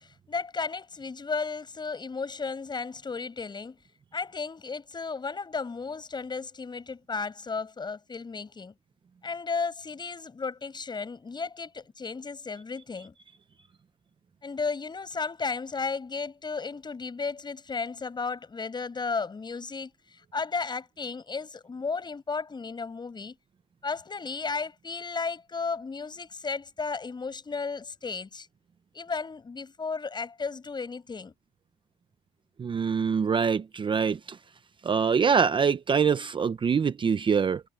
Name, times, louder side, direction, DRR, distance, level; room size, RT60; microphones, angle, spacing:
voice 1, 0.0-3.8 4.1-8.7 9.2-13.1 14.4-23.4 23.8-28.5 28.9-31.3, left 4 dB, 25° left, 6.0 m, -34 dB
voice 2, 32.6-34.4 34.8-37.6, right 6 dB, 30° right, 0.7 m, -24 dB
cardioid pair, 110°, 17 cm